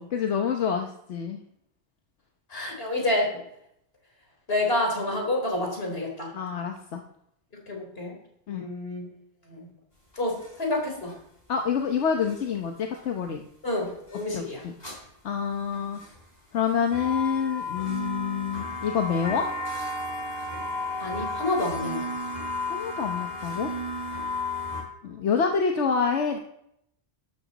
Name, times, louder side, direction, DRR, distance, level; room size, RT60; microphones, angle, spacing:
voice 1, 0.1-1.4 6.3-7.0 8.5-8.7 11.5-13.4 14.3-14.7 15.2-16.0 16.5-19.5 22.7-23.7 25.0-26.4, left 6 dB, 85° left, 3 dB, 1.3 m, -27 dB
voice 2, 2.5-3.3 4.5-6.3 7.7-8.1 8.5-9.1 9.5-9.7 10.2-11.1 13.6-14.6 21.0-22.0, left 2 dB, 60° left, 1 dB, 4.0 m, -28 dB
sound 1, 10.1-10.5 11.1-11.2 12.0-12.3 12.9-13.0 13.9-14.2 14.8-15.0 15.7-16.2 16.7-24.8, left 2 dB, 40° left, 4.7 m, -33 dB
12.5 x 12.5 x 4.0 m, 0.75 s
omnidirectional pair, 1.1 m